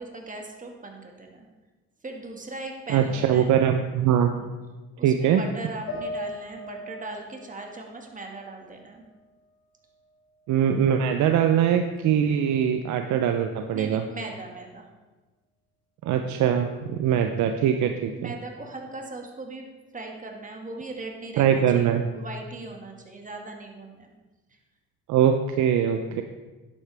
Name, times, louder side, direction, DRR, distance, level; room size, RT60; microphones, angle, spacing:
voice 1, 0.0-1.5 2.0-3.8 4.3-4.5 5.0-9.0 13.7-14.9 18.1-24.1, right 2 dB, 25° right, 2 dB, 1.9 m, -39 dB
voice 2, 2.9-4.3 5.0-5.4 10.5-14.0 16.0-18.3 21.4-22.0 25.1-26.2, right 9 dB, 65° right, 6 dB, 0.7 m, -22 dB
sound 1, 5.9-9.3 9.7-10.7, left 1 dB, 80° left, 3.2 m, -40 dB
10.5 x 8.3 x 3.5 m, 1.2 s
supercardioid pair, 80°, 31 cm